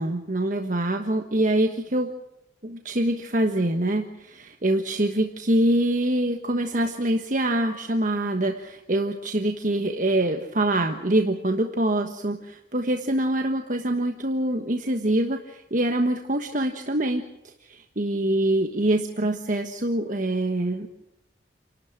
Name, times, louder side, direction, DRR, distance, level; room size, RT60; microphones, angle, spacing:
voice 1, 0.0-2.1 2.6-17.2 17.6-20.9, right 1 dB, 45° right, 4 dB, 1.3 m, -25 dB
29.0 x 12.5 x 8.9 m, 0.85 s
head